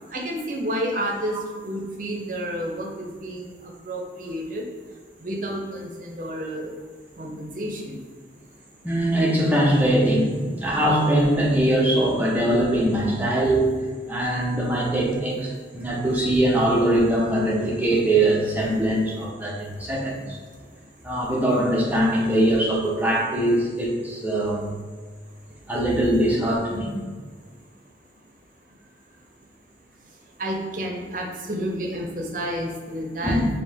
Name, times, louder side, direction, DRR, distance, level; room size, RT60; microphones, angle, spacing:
voice 1, 0.1-4.6 5.2-6.7 7.2-8.0 30.4-33.4, equal, 45° right, 0 dB, 0.7 m, -30 dB
voice 2, 8.8-13.8 14.1-20.4 21.0-24.7 25.7-26.9 33.2-33.5, right 1 dB, 10° right, -4 dB, 0.7 m, -22 dB
4.5 x 2.8 x 3.5 m, 1.5 s
head